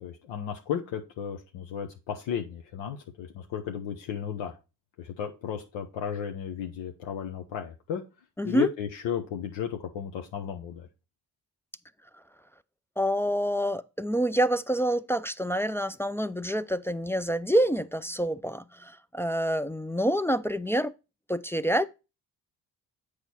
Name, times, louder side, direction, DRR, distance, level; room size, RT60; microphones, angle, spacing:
voice 1, 0.0-4.5 5.0-8.0 8.4-10.9, left 8 dB, 75° left, 1.0 m, -34 dB
voice 2, 8.4-8.7 13.0-20.9 21.3-21.9, right 1 dB, 5° left, 0.4 m, -27 dB
7.9 x 4.8 x 4.3 m
hypercardioid pair, 45°, 45 cm